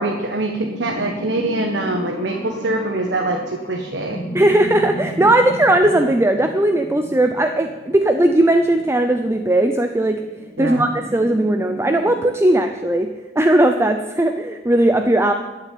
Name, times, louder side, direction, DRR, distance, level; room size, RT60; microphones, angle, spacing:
voice 1, 0.0-4.2 10.6-10.8, right 2 dB, 70° right, 2 dB, 1.4 m, -24 dB
sound 1, 0.6-12.2, equal, 15° left, 2.4 m, -34 dB
voice 2, 4.3-10.2 10.6-13.1 13.4-15.3, right 1 dB, 15° right, 6 dB, 0.6 m, -17 dB
14.0 x 7.4 x 9.3 m, 1.3 s
head